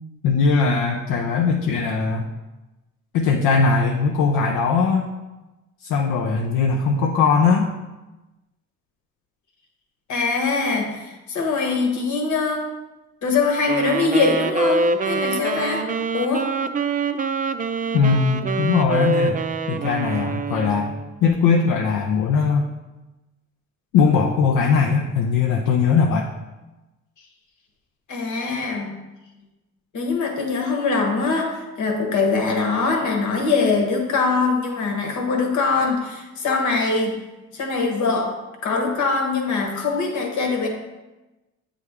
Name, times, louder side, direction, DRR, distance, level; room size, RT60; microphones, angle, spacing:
voice 1, 0.2-2.3 3.1-5.0 5.8-7.7 17.9-19.4 19.7-20.9 21.2-22.7 23.9-26.3, left 5 dB, 90° left, 1 dB, 0.6 m, -20 dB
voice 2, 10.1-12.7 13.2-15.9 16.1-16.5 28.1-28.9 29.9-37.2 37.5-38.3 38.6-40.7, left 4 dB, 75° left, 2 dB, 1.3 m, -22 dB
Wind instrument woodwind instrument, 13.7-21.1, right 3 dB, 30° right, 0.4 m, -25 dB
8.1 x 3.4 x 3.5 m, 1.1 s
cardioid pair, 90°, 30 cm